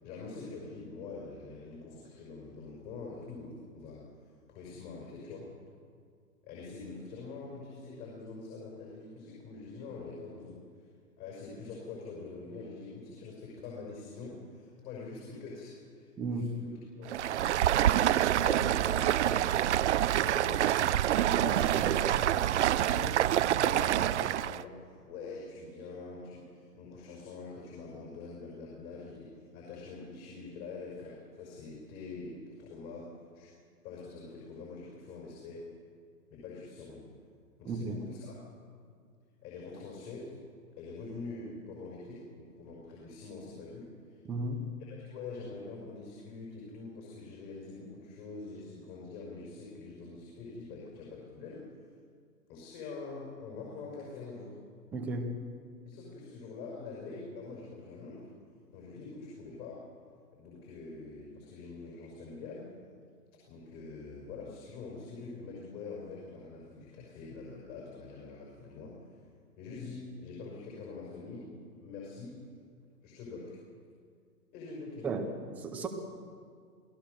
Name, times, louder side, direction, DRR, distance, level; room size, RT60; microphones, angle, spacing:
voice 1, 0.0-4.0 4.5-5.5 6.4-10.6 11.2-16.7 17.0-17.1 18.4-19.5 20.2-20.7 21.1-23.1 23.5-33.1 33.3-33.5 33.8-35.6 36.3-37.0 37.6-38.4 39.4-40.3 40.8-44.2 44.9-51.6 52.5-54.5 55.9-58.3 58.7-59.8 60.3-62.7 63.5-69.0 69.6-72.3 73.0-73.6 74.5-75.1, left 4 dB, 35° left, -3 dB, 6.1 m, -44 dB
voice 2, 16.2-16.5 37.7-38.0 44.3-44.7 54.9-55.4 75.0-75.3 75.6-75.9, right 2 dB, 5° right, 3 dB, 0.5 m, -34 dB
Stream, 17.1-24.6, right 11 dB, 50° right, 0.6 m, -27 dB
28.5 x 17.5 x 6.9 m, 2.2 s
hypercardioid pair, 140°, 48 cm